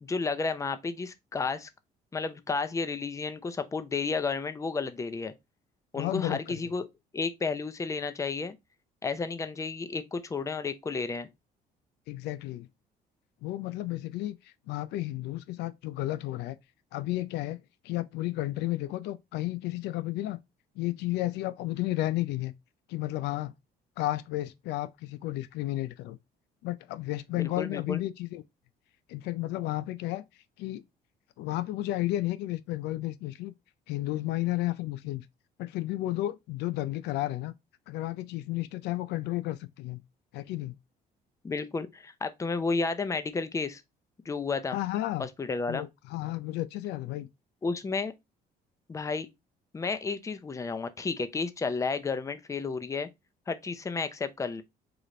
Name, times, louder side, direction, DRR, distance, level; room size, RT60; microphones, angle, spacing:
voice 1, 0.0-1.7 2.1-5.3 5.9-6.8 7.1-8.6 9.0-11.3 27.4-28.0 41.4-43.8 44.3-44.8 45.2-45.9 47.6-48.1 48.9-49.3 49.7-53.1 53.5-54.6, left 4 dB, 20° left, 0.6 m, -32 dB
voice 2, 5.9-6.5 12.1-12.7 13.4-16.6 16.9-20.4 20.8-22.5 22.9-23.5 24.0-26.2 26.6-28.4 29.1-30.2 30.6-30.8 31.4-33.5 33.9-35.2 35.6-37.5 37.9-40.0 40.3-40.7 44.7-45.3 45.7-47.3, left 16 dB, 80° left, 0.5 m, -32 dB
4.9 x 2.5 x 4.1 m
cardioid pair, 110°, 17 cm